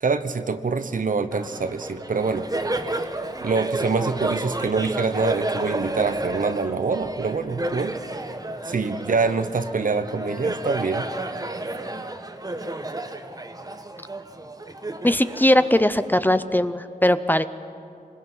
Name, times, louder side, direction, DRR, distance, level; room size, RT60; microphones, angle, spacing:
voice 1, 0.0-2.5 3.4-7.9 8.6-11.1, right 4 dB, 65° right, 11 dB, 0.9 m, -25 dB
Laughter, 1.3-16.3, right 2 dB, 25° right, 1.1 m, -31 dB
voice 2, 15.0-17.5, left 1 dB, 10° left, 12 dB, 0.6 m, -19 dB
25.0 x 21.5 x 5.6 m, 2.5 s
wide cardioid pair, 85°, 15 cm